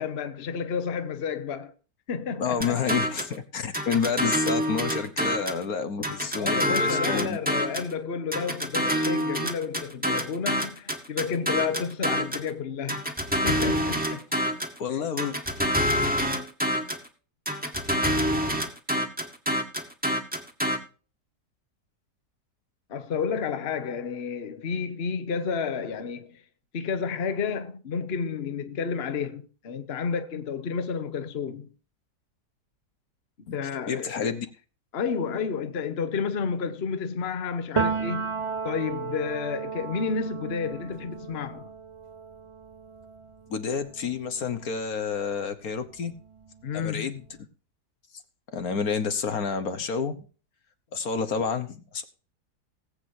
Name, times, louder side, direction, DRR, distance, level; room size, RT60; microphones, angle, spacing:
voice 1, 0.0-1.7 2.1-2.9 6.4-13.0 13.4-14.2 14.9-15.0 22.9-26.4 26.7-31.7 33.5-34.3 34.9-41.7 46.6-47.1, left 6 dB, 40° left, 1.2 m, -31 dB
voice 2, 2.4-7.4 14.8-15.3 33.5-33.6 33.9-34.5 43.5-46.1 46.7-47.2 48.5-50.3 50.9-52.0, left 6 dB, 65° left, 1.6 m, -29 dB
sound 1, 2.6-3.4 3.7-5.6 6.0-7.9 8.3-12.5 12.9-14.8 15.2-17.1 17.5-20.8, equal, 5° right, 1.7 m, -27 dB
Piano, 37.8-45.4 45.7-47.3, right 5 dB, 25° right, 0.7 m, -34 dB
20.0 x 8.4 x 2.7 m
omnidirectional pair, 1.7 m